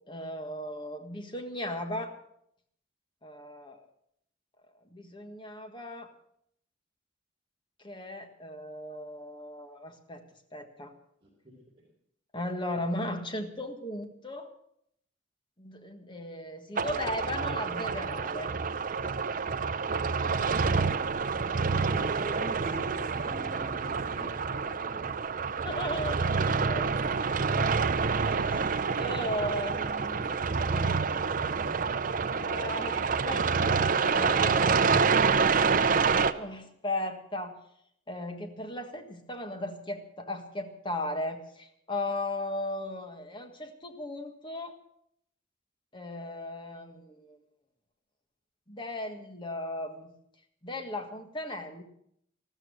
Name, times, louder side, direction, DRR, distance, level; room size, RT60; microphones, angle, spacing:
voice 1, 0.1-2.1 3.2-3.8 4.9-6.1 7.8-10.2 10.5-10.9 12.3-14.5 15.6-18.5 20.2-20.4 25.6-26.9 27.5-27.7 28.2-30.6 32.4-33.7 34.1-35.1 36.4-37.5 38.1-44.7 45.9-47.4 48.7-50.1 50.6-51.8, left 1 dB, 25° left, 6 dB, 1.6 m, -37 dB
voice 2, 11.2-11.6 21.9-25.1 30.5-31.9, right 1 dB, 30° right, -7 dB, 4.5 m, -43 dB
sound 1, 16.8-36.3, right 5 dB, 45° right, 0.6 m, -27 dB
14.0 x 13.5 x 6.3 m, 0.70 s
head